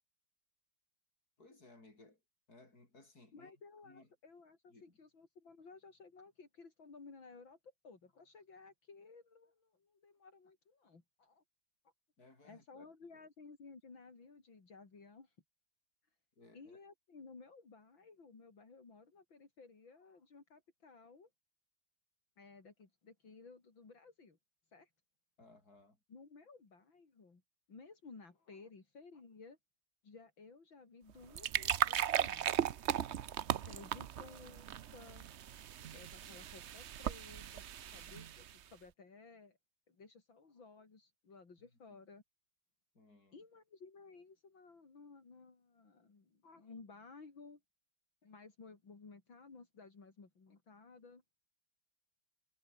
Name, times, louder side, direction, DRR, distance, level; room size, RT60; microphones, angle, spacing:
voice 1, 1.4-2.2 2.5-3.5 3.8-4.1 4.7-5.0 12.2-13.3 16.4-16.8 25.4-26.0 41.6-42.0 42.9-43.4, left 2 dB, 50° left, 6.7 m, -62 dB
voice 2, 3.3-11.4 12.4-15.3 16.5-21.3 22.4-24.4 24.7-24.9 26.1-27.4 27.7-29.6 30.0-32.5 33.6-35.3 35.9-37.6 37.9-39.6 39.9-42.2 43.3-47.6 48.2-51.2, left 4 dB, 70° left, 4.6 m, -56 dB
sound 1, 31.1-38.6, right 10 dB, 80° right, 0.6 m, -37 dB
omnidirectional pair, 2.2 m